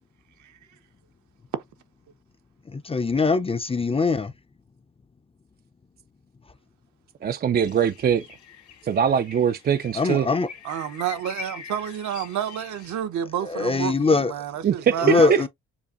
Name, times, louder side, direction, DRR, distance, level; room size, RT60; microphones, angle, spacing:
voice 1, 2.7-4.3 9.9-10.5 13.5-14.3 15.0-15.5, left 4 dB, 20° left, 0.5 m, -22 dB
voice 2, 7.2-8.2 8.8-10.3 14.6-15.5, right 8 dB, 35° right, 0.4 m, -22 dB
sound 1, 7.6-13.0, left 7 dB, 70° left, 2.0 m, -43 dB
voice 3, 10.6-15.5, right 10 dB, 70° right, 0.9 m, -30 dB
7.1 x 2.5 x 2.5 m
cardioid pair, 90°, 30 cm